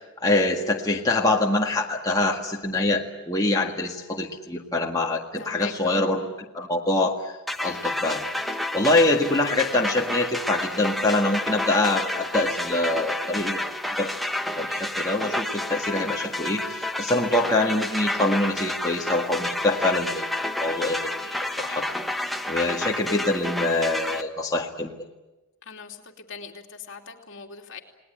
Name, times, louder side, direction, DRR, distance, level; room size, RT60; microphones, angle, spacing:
voice 1, 0.2-7.3 7.6-8.2 8.7-13.6 14.0-14.1 14.6-20.3 20.6-21.9 22.5-24.9, left 2 dB, 15° left, -1 dB, 1.8 m, -24 dB
voice 2, 5.4-6.0 25.6-27.8, left 5 dB, 60° left, 1 dB, 2.9 m, -41 dB
sound 1, 7.5-24.2, left 1 dB, ahead, 1.1 m, -30 dB
30.0 x 19.5 x 9.0 m, 1.1 s
head